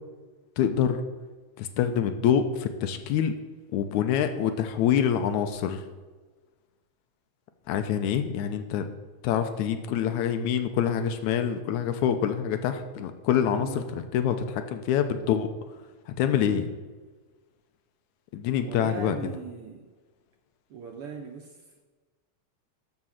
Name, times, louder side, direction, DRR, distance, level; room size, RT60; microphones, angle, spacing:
voice 1, 0.6-1.0 1.6-3.3 3.7-5.8 7.7-8.9 9.2-15.5 16.1-16.7 18.3-19.2, left 9 dB, 80° left, 8 dB, 2.1 m, -26 dB
voice 2, 18.6-19.9 20.7-21.8, right 5 dB, 65° right, 2 dB, 1.4 m, -40 dB
13.0 x 5.2 x 6.3 m, 1.3 s
omnidirectional pair, 3.4 m